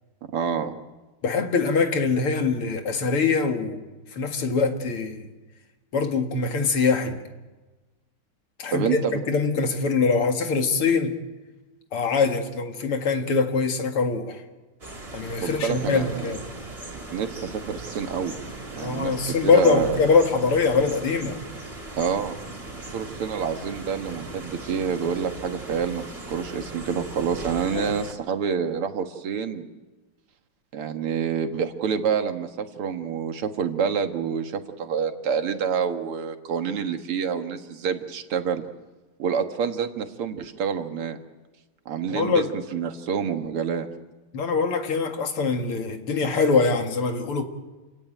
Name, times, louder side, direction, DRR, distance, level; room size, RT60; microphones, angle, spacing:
voice 1, 0.3-0.8 8.7-9.2 15.4-16.4 17.1-18.4 18.7-20.0 22.0-22.4 22.8-29.7 30.7-38.6 39.2-41.2 41.9-43.9, right 7 dB, 90° right, 7 dB, 2.5 m, -27 dB
voice 2, 1.2-3.8 4.1-5.3 5.9-7.2 8.6-11.1 11.9-14.4 15.1-16.4 18.8-21.4 27.7-27.9 42.1-42.5 44.3-47.4, left 4 dB, 85° left, 5 dB, 3.0 m, -23 dB
sound 1, 14.8-28.1, right 2 dB, 25° right, 3.4 m, -38 dB
29.0 x 17.0 x 9.1 m, 1.2 s
omnidirectional pair, 2.4 m